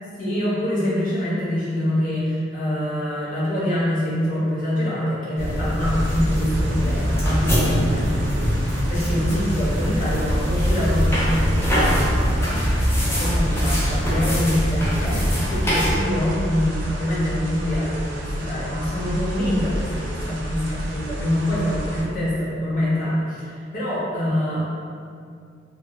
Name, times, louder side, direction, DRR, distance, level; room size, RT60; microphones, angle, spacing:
voice 1, 0.2-24.7, left 1 dB, 45° left, -9 dB, 0.8 m, -25 dB
sound 1, 5.4-16.0, equal, 15° left, 0.4 m, -23 dB
sound 2, 5.8-22.0, equal, 65° right, 0.4 m, -29 dB
2.0 x 2.0 x 3.6 m, 2.3 s
head